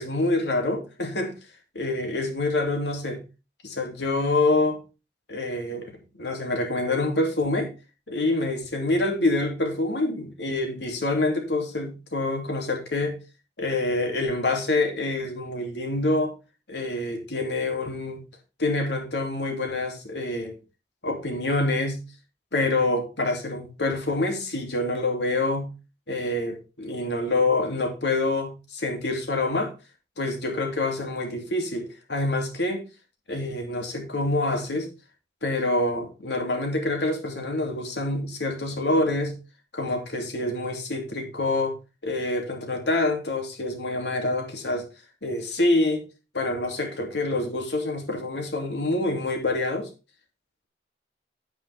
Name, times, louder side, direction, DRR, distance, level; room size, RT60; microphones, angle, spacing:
voice 1, 0.0-1.4 1.7-3.2 3.6-4.8 5.3-7.7 8.1-13.2 13.6-16.3 16.7-18.2 18.6-20.6 21.0-22.0 22.5-25.7 26.1-29.7 30.2-32.9 33.3-34.9 35.4-39.3 39.7-41.7 42.0-44.8 45.2-46.0 46.3-49.9, left 2 dB, 75° left, 2.8 m, -26 dB
9.3 x 8.8 x 3.5 m
head